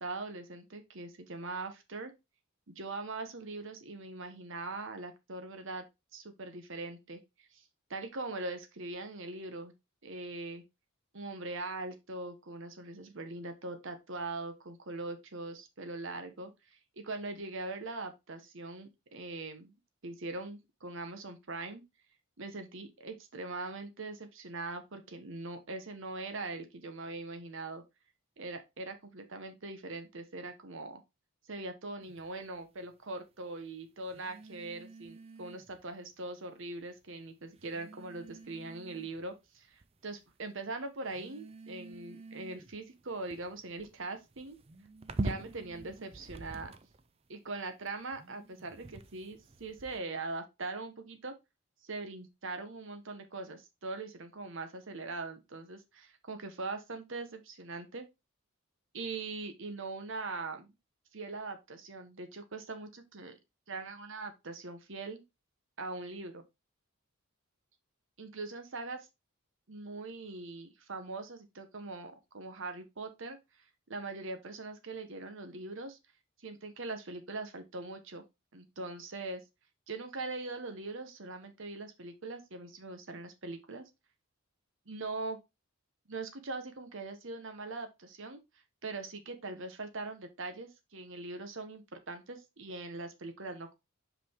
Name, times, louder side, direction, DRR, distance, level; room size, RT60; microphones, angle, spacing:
voice 1, 0.0-2.1 2.7-5.8 6.1-7.6 7.9-9.7 10.0-10.6 11.1-19.7 20.0-21.8 22.4-27.8 28.4-31.0 31.5-44.6 45.2-46.7 47.3-51.3 51.8-58.1 58.9-60.7 61.1-63.4 63.7-65.2 65.8-66.4 68.2-69.1 69.7-73.4 73.9-76.0 76.4-78.2 78.5-79.4 79.9-83.8 84.9-85.4 86.1-88.4 88.8-93.7, right 3 dB, 60° right, 1.1 m, -41 dB
sound 1, 32.0-32.3 34.0-35.8 36.8-36.9 37.6-39.3 39.8-40.3 41.1-47.1 47.9-50.0, right 2 dB, 25° right, 0.5 m, -44 dB
5.6 x 5.0 x 3.5 m
head